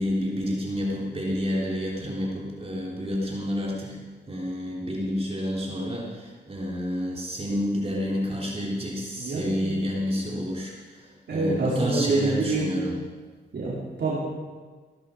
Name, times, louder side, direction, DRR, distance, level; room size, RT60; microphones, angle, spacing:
voice 1, 0.0-13.0, equal, 35° right, -4 dB, 3.5 m, -29 dB
voice 2, 9.2-9.8 11.3-12.7 13.5-14.2, right 3 dB, 70° right, -7 dB, 4.2 m, -27 dB
17.0 x 13.5 x 5.1 m, 1.4 s
cardioid pair, 75°, 18 cm